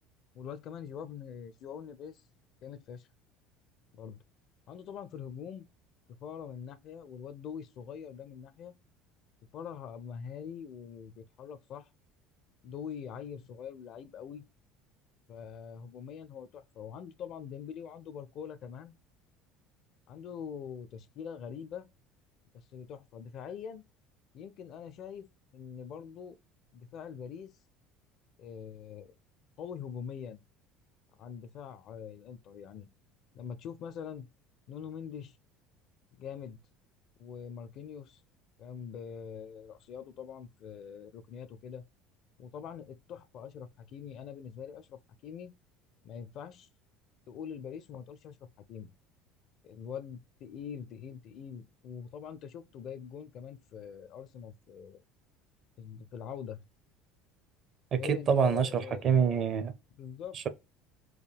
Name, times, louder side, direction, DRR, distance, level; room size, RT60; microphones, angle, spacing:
voice 1, 0.3-2.2 2.6-3.1 3.9-4.2 4.7-5.7 6.1-8.8 9.5-11.9 12.6-14.4 15.3-19.0 20.1-21.9 22.5-23.8 24.3-25.3 25.5-26.4 26.7-27.5 28.4-29.1 29.6-30.4 31.2-32.9 33.3-34.3 34.7-35.4 36.1-36.6 37.2-38.2 38.6-41.8 42.4-45.6 46.0-46.7 47.3-48.4 48.7-48.9 49.6-55.0 55.8-56.6 57.9-59.1 60.0-60.5, left 7 dB, 50° left, 0.5 m, -43 dB
voice 2, 57.9-59.8 60.3-60.5, right 7 dB, 45° right, 0.6 m, -27 dB
4.6 x 2.2 x 3.3 m
figure-of-eight pair, 65°, 0 cm